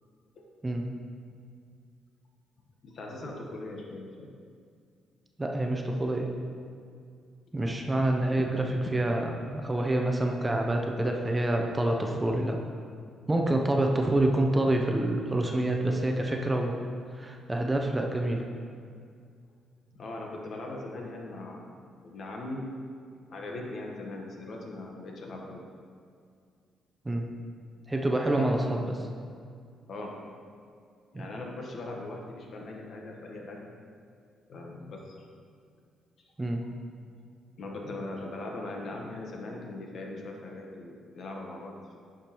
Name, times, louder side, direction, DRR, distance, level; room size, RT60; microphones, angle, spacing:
voice 1, 2.8-4.3 8.6-8.7 19.9-21.7 22.0-22.7 23.3-25.6 28.3-28.9 29.9-30.1 31.1-33.7 34.5-35.2 37.6-42.0, left 2 dB, 60° left, 0 dB, 1.2 m, -40 dB
voice 2, 5.4-6.3 7.5-12.6 13.3-16.8 17.1-18.4 27.0-27.2 27.9-28.9 31.1-31.3 36.4-36.6, right 1 dB, 15° right, 2 dB, 0.7 m, -27 dB
10.5 x 5.0 x 3.0 m, 2.2 s
cardioid pair, 90°, 0 cm